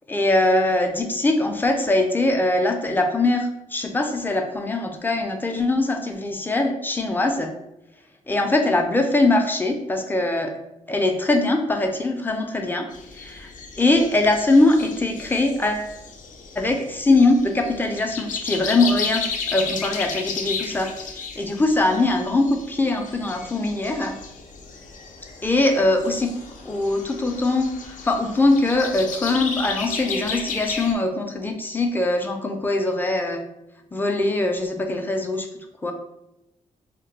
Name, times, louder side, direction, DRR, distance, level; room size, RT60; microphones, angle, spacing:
voice 1, 0.1-7.5 8.3-10.5 10.9-13.5 13.8-15.9 16.6-19.2 19.5-24.2 25.4-26.3 26.6-33.4 33.9-35.5 35.8-35.9, left 2 dB, 15° left, 3 dB, 0.4 m, -22 dB
sound 1, 12.9-30.9, left 5 dB, 80° left, 0.5 m, -34 dB
2.3 x 2.1 x 3.8 m, 0.87 s
cardioid pair, 105°, 13 cm